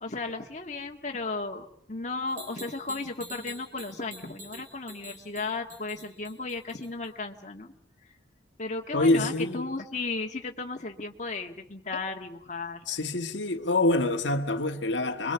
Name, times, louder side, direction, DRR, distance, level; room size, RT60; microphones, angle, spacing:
voice 1, 0.0-7.7 8.6-12.8, left 3 dB, 40° left, 1.8 m, -35 dB
sound 1, 2.3-7.1, right 1 dB, 45° right, 5.7 m, -46 dB
voice 2, 8.9-9.7 12.9-15.3, left 2 dB, 80° left, 1.6 m, -26 dB
27.5 x 22.5 x 7.0 m
head